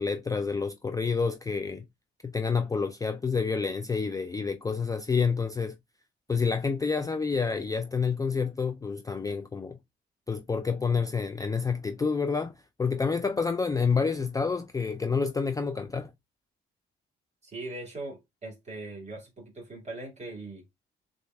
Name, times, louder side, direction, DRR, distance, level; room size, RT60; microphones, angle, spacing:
voice 1, 0.0-1.8 2.2-5.8 6.3-9.8 10.3-12.5 12.8-16.1, left 5 dB, 15° left, 0.4 m, -28 dB
voice 2, 17.4-20.6, right 2 dB, 35° right, 2.0 m, -40 dB
6.5 x 2.5 x 2.2 m
cardioid pair, 90°, 20 cm